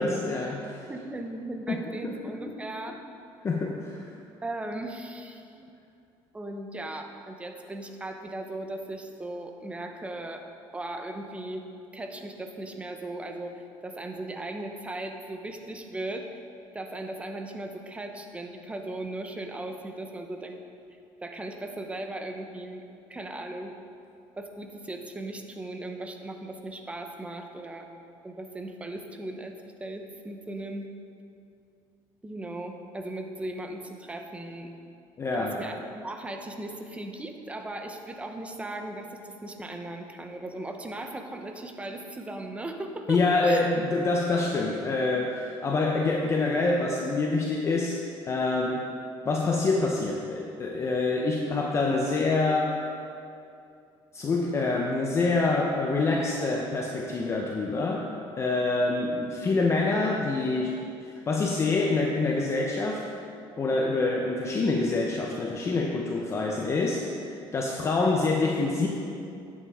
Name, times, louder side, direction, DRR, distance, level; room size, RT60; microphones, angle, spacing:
voice 1, 0.0-0.9 1.7-2.1 3.4-4.1 35.2-35.6 43.1-48.9 49.2-52.8 54.1-58.1 58.4-63.1 63.6-68.9, left 3 dB, 30° left, 0 dB, 0.7 m, -26 dB
voice 2, 0.9-3.0 4.4-5.7 6.3-10.4 10.7-11.6 11.9-16.4 16.7-20.6 20.9-22.8 23.1-23.7 24.4-27.9 28.2-29.5 29.8-30.9 32.2-34.7 35.3-43.6, right 1 dB, 15° right, 4 dB, 0.8 m, -37 dB
10.5 x 8.6 x 3.6 m, 2.5 s
cardioid pair, 130°, 10 cm